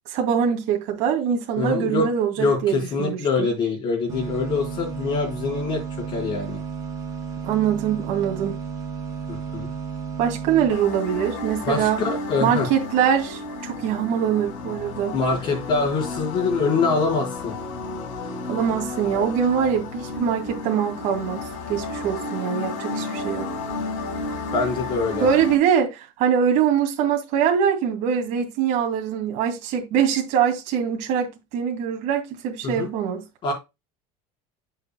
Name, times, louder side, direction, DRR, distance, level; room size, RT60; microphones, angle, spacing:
voice 1, 0.1-3.5 7.4-8.6 10.2-12.0 12.4-15.2 18.5-21.4 21.7-23.5 25.2-33.2, right 8 dB, 50° right, 2.4 m, -23 dB
voice 2, 1.6-2.1 2.4-5.8 6.1-6.6 9.3-9.7 11.6-12.7 15.1-17.6 24.5-25.3 32.6-32.9 33.4-33.5, left 4 dB, 30° left, 4.0 m, -24 dB
sound 1, 4.1-10.7, right 6 dB, 25° right, 2.8 m, -33 dB
sound 2, 10.7-25.6, left 3 dB, 90° left, 3.8 m, -32 dB
9.6 x 7.0 x 2.2 m
cardioid pair, 170°, 16 cm